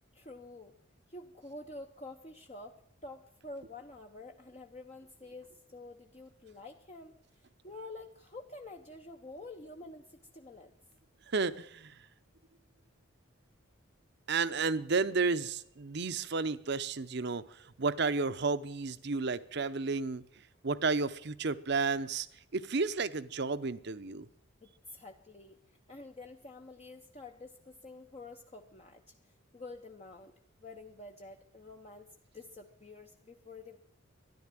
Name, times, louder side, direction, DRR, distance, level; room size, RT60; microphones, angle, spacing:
voice 1, 0.1-0.8 1.1-10.7 24.6-33.8, left 2 dB, 30° left, 3 dB, 0.8 m, -49 dB
voice 2, 11.3-12.0 14.3-20.2 20.6-22.3 22.5-24.3, right 4 dB, 55° right, 13 dB, 0.7 m, -32 dB
13.0 x 11.0 x 7.5 m, 0.70 s
head